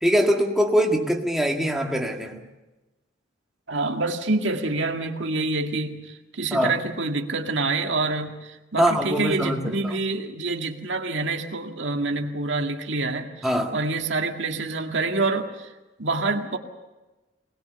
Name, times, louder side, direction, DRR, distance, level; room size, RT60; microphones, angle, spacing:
voice 1, 0.0-2.4 6.5-6.8 8.8-9.9 13.4-13.8, equal, ahead, 1 dB, 1.8 m, -23 dB
voice 2, 3.7-15.7 16.0-16.6, right 3 dB, 65° right, 4 dB, 1.9 m, -27 dB
24.0 x 20.0 x 6.9 m, 1.1 s
head